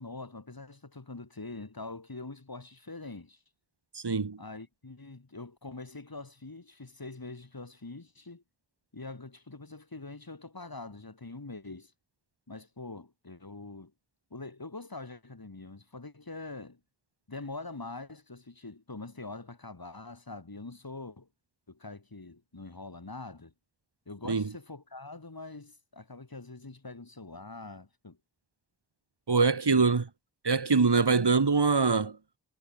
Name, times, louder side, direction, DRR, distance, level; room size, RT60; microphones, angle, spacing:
voice 1, 0.0-3.4 4.4-8.4 8.9-11.9 12.5-13.9 14.3-16.8 17.3-21.3 21.7-23.5 24.1-28.2 29.7-29.9, left 3 dB, 55° left, 7.0 m, -44 dB
voice 2, 3.9-4.4 24.3-24.4 29.3-30.1 30.4-32.2, right 4 dB, 70° right, 2.7 m, -24 dB
wide cardioid pair, 40°, 42 cm